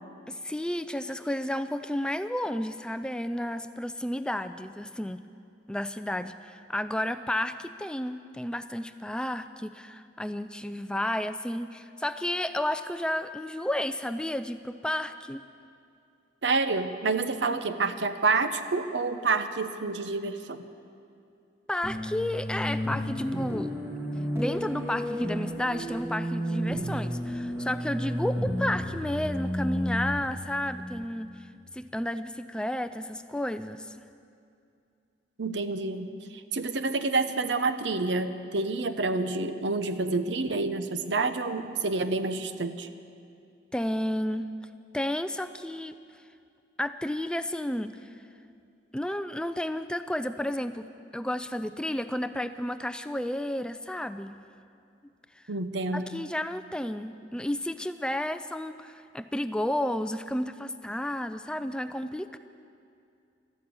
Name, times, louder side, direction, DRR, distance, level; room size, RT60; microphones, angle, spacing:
voice 1, 0.3-5.2 5.7-15.4 17.4-17.6 21.7-23.7 24.3-31.5 31.7-34.0 43.7-44.5 44.9-45.9 46.8-48.2 48.9-50.9 51.1-54.4 55.4-55.5 55.9-62.4, left 1 dB, 5° left, 11 dB, 0.3 m, -32 dB
voice 2, 16.4-20.6 35.4-42.9 55.5-56.1, right 3 dB, 75° right, 10 dB, 0.8 m, -28 dB
sound 1, 21.8-31.7, equal, 15° right, 2.0 m, -32 dB
13.0 x 12.0 x 8.5 m, 2.4 s
head